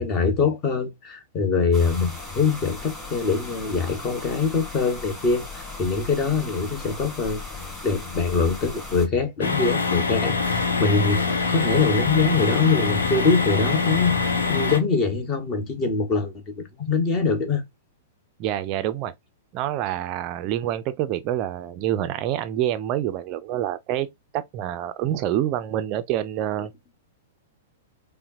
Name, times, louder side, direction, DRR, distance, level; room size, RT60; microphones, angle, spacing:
voice 1, 0.0-17.6, left 4 dB, 30° left, 1.1 m, -24 dB
sound 1, 1.7-9.1, left 2 dB, 10° left, 2.0 m, -37 dB
sound 2, 9.4-14.8, left 4 dB, 70° left, 0.8 m, -24 dB
voice 2, 18.4-19.1 19.5-26.7, right 12 dB, 35° right, 0.4 m, -27 dB
5.5 x 2.1 x 2.6 m
figure-of-eight pair, 105°, 0 cm